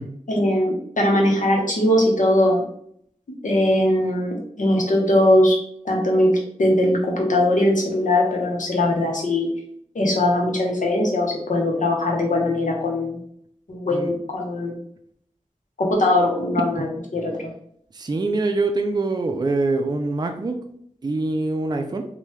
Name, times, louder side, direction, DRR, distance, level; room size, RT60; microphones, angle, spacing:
voice 1, 0.3-2.6 3.4-5.6 5.8-9.5 9.9-13.2 13.7-14.8 15.8-17.5, left 1 dB, 85° left, -1 dB, 0.8 m, -20 dB
voice 2, 17.9-20.6 21.0-22.1, right 3 dB, 35° right, 5 dB, 0.3 m, -24 dB
2.9 x 2.2 x 3.1 m, 0.68 s
wide cardioid pair, 40°, 13 cm